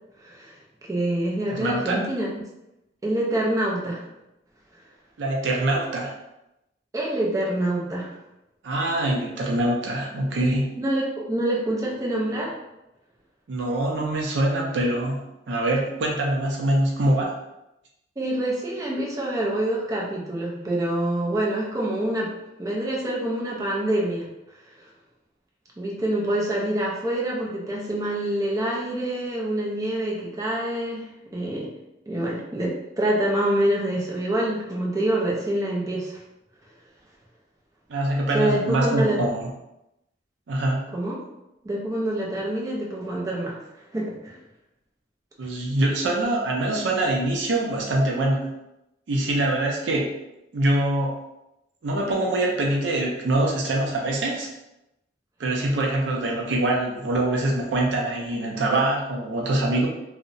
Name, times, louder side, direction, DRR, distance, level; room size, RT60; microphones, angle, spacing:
voice 1, 0.2-0.6 0.8-2.3 3.0-4.0 6.9-8.1 10.8-12.5 18.2-22.3 22.6-24.2 25.8-31.7 32.1-36.1 38.3-39.2 40.9-41.2 41.6-43.6 43.9-44.4, right 1 dB, 20° right, -4 dB, 0.4 m, -26 dB
voice 2, 1.6-2.0 5.2-6.1 8.6-10.7 13.5-17.3 37.9-39.4 40.5-40.9 45.4-48.5 49.1-50.1 50.5-51.2 51.8-54.5 55.4-59.9, right 1 dB, 80° right, -1 dB, 0.4 m, -24 dB
2.7 x 2.0 x 2.5 m, 0.91 s
head